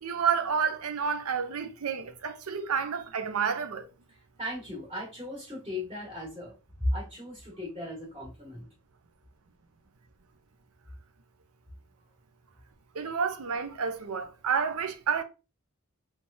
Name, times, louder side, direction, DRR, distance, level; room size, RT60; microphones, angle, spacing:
voice 1, 0.0-3.9 12.9-15.2, right 6 dB, 80° right, 0.6 m, -30 dB
voice 2, 4.4-6.5 6.9-8.7, left 1 dB, 25° right, 1.5 m, -37 dB
3.3 x 3.3 x 2.6 m
head